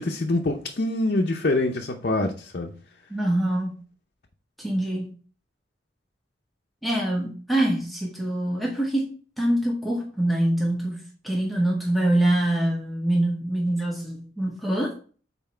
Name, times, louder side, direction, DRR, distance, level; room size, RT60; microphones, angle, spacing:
voice 1, 0.0-2.7, left 2 dB, 55° left, 0.7 m, -25 dB
voice 2, 3.1-3.8 4.6-5.1 6.8-14.9, right 1 dB, ahead, 1.0 m, -25 dB
5.9 x 4.2 x 4.3 m
head